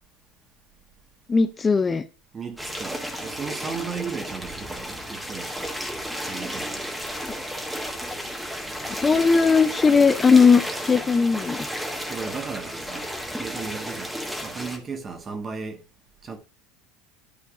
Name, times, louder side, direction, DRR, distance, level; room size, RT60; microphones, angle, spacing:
voice 1, 1.3-2.0 8.9-11.7, left 5 dB, 20° left, 0.5 m, -18 dB
voice 2, 2.3-5.8 6.2-6.9 12.1-15.8 16.2-16.4, right 5 dB, 30° right, 1.6 m, -35 dB
sound 1, 2.6-14.8, equal, 5° right, 1.5 m, -33 dB
12.0 x 4.5 x 2.5 m
supercardioid pair, 110°, 0 cm